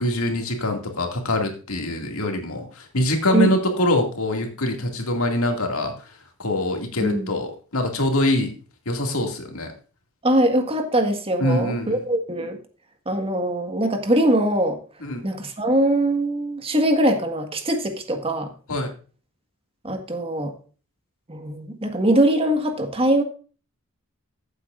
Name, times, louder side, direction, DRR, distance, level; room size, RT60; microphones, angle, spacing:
voice 1, 0.0-6.1 6.4-8.5 8.9-9.7 11.4-12.0 15.0-15.2 18.7-18.9, left 1 dB, 80° left, 3 dB, 2.3 m, -24 dB
voice 2, 7.0-7.3 10.2-12.6 13.0-14.8 15.2-18.5 19.8-20.5 21.3-23.2, right 1 dB, 25° right, 5 dB, 1.6 m, -22 dB
15.0 x 8.1 x 2.5 m, 0.37 s
head